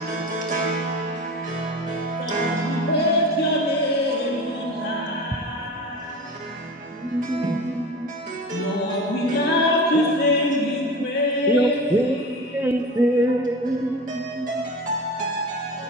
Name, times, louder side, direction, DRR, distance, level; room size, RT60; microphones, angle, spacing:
voice 1, 0.0-3.0 4.4-4.5 4.8-5.0 7.3-7.5 8.3-8.7 9.3-9.4 14.1-14.2 14.5-15.7, right 2 dB, 45° right, -4 dB, 1.8 m, -28 dB
voice 2, 2.2-6.5 8.5-12.8, left 1 dB, 60° left, -2 dB, 2.0 m, -24 dB
voice 3, 6.9-8.1 8.6-8.7 9.9-10.1 11.5-12.2 12.5-14.7, right 1 dB, 10° right, 7 dB, 0.4 m, -24 dB
17.5 x 10.5 x 3.0 m, 2.3 s
head